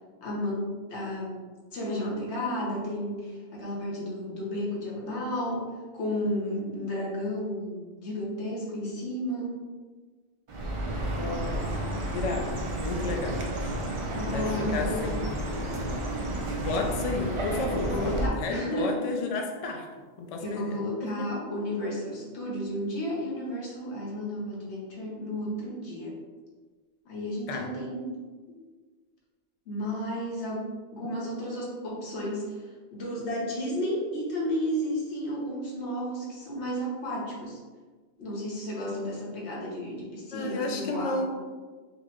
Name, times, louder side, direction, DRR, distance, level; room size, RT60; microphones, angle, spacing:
voice 1, 0.2-1.4 1.7-9.6 14.1-15.1 17.7-18.9 20.4-26.1 27.0-28.2 29.7-37.6 38.2-41.3, equal, 80° left, -4 dB, 1.4 m, -33 dB
Chirp tweet, 10.5-18.3, right 1 dB, 55° right, 0.3 m, -31 dB
voice 2, 11.1-13.4 14.3-15.4 16.5-19.9 20.2-21.6 27.5-27.7 40.3-41.3, left 3 dB, 50° left, 3 dB, 0.4 m, -32 dB
4.2 x 3.1 x 2.9 m, 1.4 s
omnidirectional pair, 1.1 m